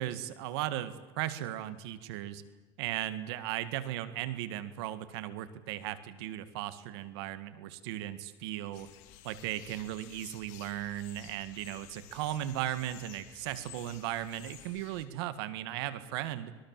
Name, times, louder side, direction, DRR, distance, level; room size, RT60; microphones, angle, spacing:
voice 1, 0.0-2.4 2.8-8.9 9.2-16.5, right 13 dB, 80° right, 13 dB, 1.8 m, -37 dB
sound 1, 8.7-15.1, left 12 dB, 70° left, 3.6 m, -53 dB
25.5 x 22.0 x 7.6 m, 1.3 s
supercardioid pair, 135°, 13 cm